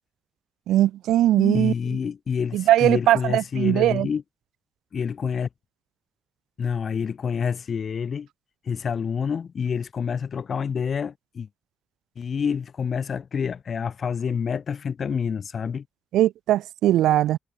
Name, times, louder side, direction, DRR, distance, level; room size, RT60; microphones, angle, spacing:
voice 1, 0.7-1.7 2.5-4.1 16.1-17.4, right 13 dB, 85° right, 0.8 m, -20 dB
voice 2, 1.4-4.2 4.9-5.5 6.6-8.3 8.6-11.5 12.1-15.9, left 6 dB, 55° left, 2.8 m, -28 dB
supercardioid pair, 65°, 0 cm